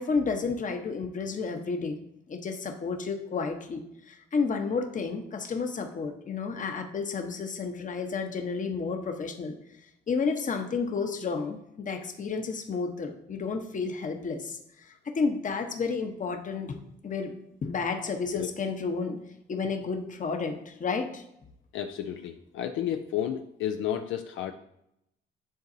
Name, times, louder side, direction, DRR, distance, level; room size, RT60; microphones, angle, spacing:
voice 1, 0.0-2.0 2.3-9.5 10.1-16.8 17.0-17.3 17.6-19.2 19.5-21.2, left 4 dB, 40° left, 5 dB, 0.9 m, -31 dB
voice 2, 21.7-24.5, left 10 dB, 80° left, 6 dB, 0.5 m, -32 dB
10.0 x 3.9 x 2.7 m, 0.80 s
cardioid pair, 90°, 20 cm